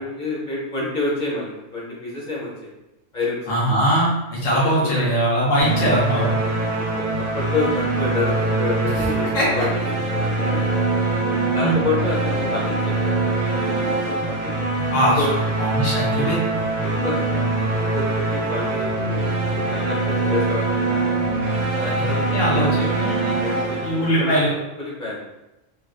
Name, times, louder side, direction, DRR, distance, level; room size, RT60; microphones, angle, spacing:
voice 1, 0.0-2.5 3.1-3.5 4.5-5.1 6.4-9.3 9.5-10.8 11.5-14.6 15.2-15.3 16.8-21.0 21.7-22.2 22.5-22.8 23.4-24.4 24.8-25.2, left 3 dB, 45° left, -5 dB, 0.8 m, -28 dB
voice 2, 3.5-6.3 9.3-9.5 11.6-11.8 14.9-15.2 15.6-16.4 21.8-22.0 22.3-23.3 23.8-24.5, equal, 80° left, -7 dB, 1.3 m, -21 dB
sound 1, 5.6-24.5, right 2 dB, 55° right, 0.5 m, -23 dB
3.5 x 2.4 x 2.4 m, 0.96 s
omnidirectional pair, 1.2 m